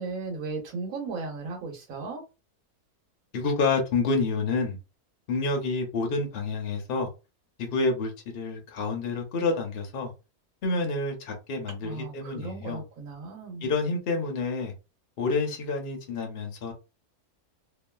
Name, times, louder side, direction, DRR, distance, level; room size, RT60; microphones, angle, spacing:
voice 1, 0.0-2.2 11.8-13.7, right 4 dB, 65° right, 1.2 m, -36 dB
voice 2, 3.3-4.8 5.3-7.1 7.6-10.1 10.6-12.8 13.6-14.7 15.2-16.7, left 3 dB, 50° left, 0.8 m, -28 dB
2.7 x 2.4 x 2.2 m
omnidirectional pair, 1.6 m